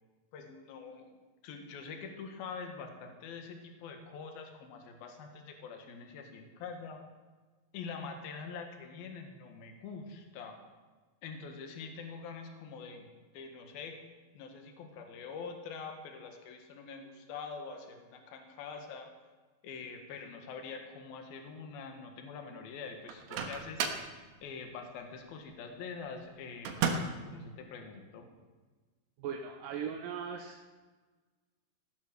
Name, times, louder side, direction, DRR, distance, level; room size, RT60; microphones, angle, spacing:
voice 1, 0.3-1.1 1.4-7.0 7.7-10.6 11.2-14.0 14.3-19.1 19.6-23.9 24.4-28.3, left 5 dB, 65° left, 4 dB, 3.4 m, -45 dB
Microwave oven, 23.1-24.1 26.6-27.3, right 5 dB, 90° right, 3.4 m, -33 dB
voice 2, 29.2-30.7, right 7 dB, 70° right, 2 dB, 2.2 m, -39 dB
16.0 x 11.0 x 6.7 m, 1.3 s
omnidirectional pair, 4.7 m